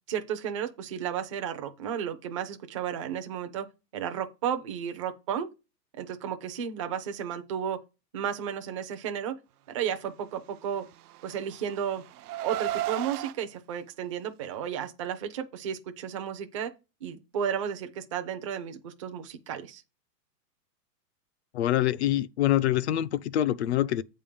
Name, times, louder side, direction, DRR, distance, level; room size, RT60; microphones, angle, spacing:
voice 1, 0.1-3.7 3.9-5.5 6.0-7.8 8.1-9.4 9.7-10.8 11.2-12.0 12.4-16.7 17.0-19.8, right 8 dB, 20° right, 0.4 m, -33 dB
Car, 10.8-13.3, right 14 dB, 65° right, 0.6 m, -35 dB
voice 2, 21.5-24.0, left 13 dB, 45° left, 0.4 m, -25 dB
8.3 x 3.7 x 6.8 m
hypercardioid pair, 150°, 50 cm